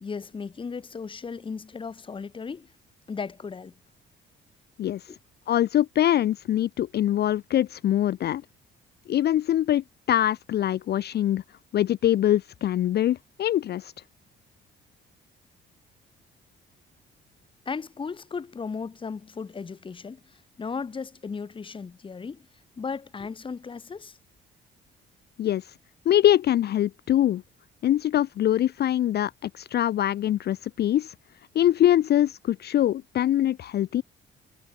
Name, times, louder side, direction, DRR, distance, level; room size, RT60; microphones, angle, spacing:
voice 1, 0.0-2.7 3.1-3.7 5.1-5.2 17.7-22.5 22.8-24.2, left 5 dB, 25° left, 0.8 m, -36 dB
voice 2, 5.5-8.4 9.1-11.4 11.7-13.9 25.4-25.7 26.1-27.4 27.8-31.1 31.5-34.0, left 12 dB, 55° left, 0.5 m, -23 dB
cardioid pair, 90°, 20 cm